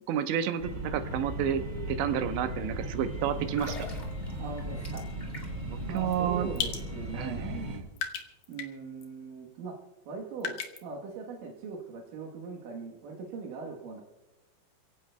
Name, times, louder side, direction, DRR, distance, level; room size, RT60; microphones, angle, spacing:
voice 1, 0.1-1.6 1.9-3.8 5.7-6.5 7.1-7.8, right 9 dB, 85° right, 7 dB, 3.2 m, -30 dB
sound 1, 0.6-7.8, equal, 25° right, 1.8 m, -37 dB
sound 2, 3.4-5.7 6.0-6.2, left 1 dB, 35° left, 0.9 m, -44 dB
voice 2, 4.4-5.0 5.8-7.7 8.5-9.8 10.1-14.0, right 4 dB, 65° right, -1 dB, 2.4 m, -40 dB
sound 3, 6.0-6.1 6.6-6.8 7.5-7.7 8.0-8.7 9.0-9.1 10.4-10.8, left 8 dB, 65° left, 2.2 m, -34 dB
28.0 x 17.0 x 2.2 m, 1.1 s
omnidirectional pair, 5.1 m